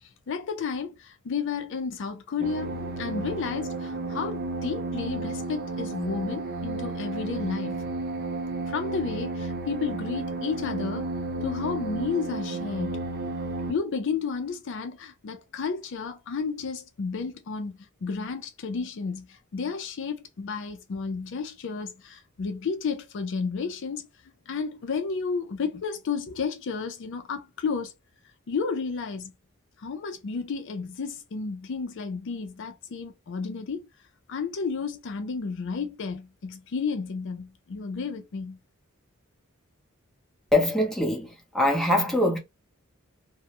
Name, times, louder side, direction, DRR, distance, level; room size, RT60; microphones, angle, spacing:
voice 1, 0.0-7.8 8.7-11.1 11.4-13.0 13.7-24.1 24.5-27.9 28.5-29.3 29.8-33.9 34.3-38.6, left 5 dB, 60° left, 0.4 m, -32 dB
sound 1, 2.4-13.7, right 2 dB, 45° right, 0.6 m, -32 dB
voice 2, 40.5-42.4, left 1 dB, ahead, 0.7 m, -23 dB
2.2 x 2.0 x 2.8 m
head